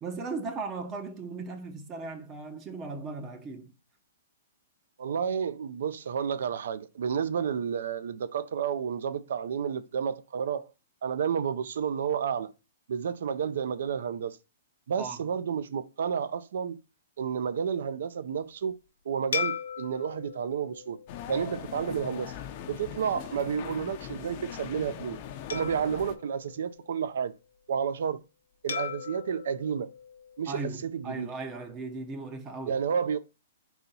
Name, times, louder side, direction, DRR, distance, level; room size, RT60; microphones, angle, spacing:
voice 1, 0.0-3.7 15.0-15.3 30.5-32.8, right 3 dB, 25° right, 0.6 m, -37 dB
voice 2, 5.0-10.7 11.0-12.5 12.9-14.4 14.9-16.8 17.2-18.8 19.1-21.0 21.3-22.3 22.7-25.2 25.5-27.3 27.7-28.2 28.6-29.9 30.4-31.3 32.7-33.2, right 7 dB, 70° right, 0.5 m, -31 dB
sound 1, 19.3-22.0 22.6-22.8 25.5-27.3 28.7-31.0, left 7 dB, 85° left, 0.6 m, -38 dB
sound 2, 21.1-26.2, left 9 dB, 40° left, 0.5 m, -40 dB
3.9 x 2.9 x 4.1 m
hypercardioid pair, 145°, 0 cm